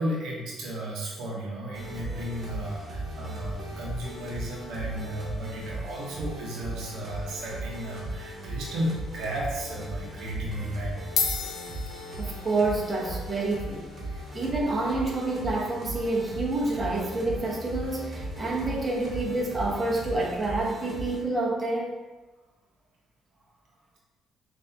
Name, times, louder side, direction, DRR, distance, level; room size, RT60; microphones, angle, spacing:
voice 1, 0.0-11.0, right 1 dB, 85° right, -4 dB, 1.0 m, -34 dB
sound 1, 1.7-21.2, right 1 dB, 45° right, 1.3 m, -37 dB
sound 2, 11.2-19.7, left 6 dB, 65° left, 0.5 m, -38 dB
voice 2, 12.2-22.0, right 2 dB, 25° right, -4 dB, 1.0 m, -28 dB
5.6 x 2.7 x 2.7 m, 1.2 s
cardioid pair, 90°, 0 cm